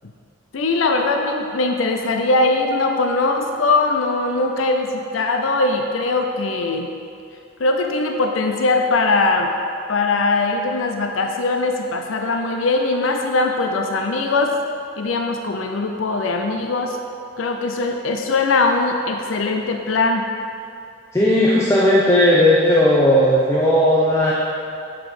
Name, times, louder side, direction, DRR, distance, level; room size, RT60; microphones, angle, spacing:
voice 1, 0.5-6.9 7.6-9.5 9.9-14.6 15.0-17.0 17.4-20.3, left 3 dB, 90° left, 4 dB, 0.5 m, -21 dB
voice 2, 21.1-24.3, left 1 dB, 15° left, -6 dB, 0.7 m, -15 dB
6.9 x 5.9 x 4.9 m, 2.5 s
head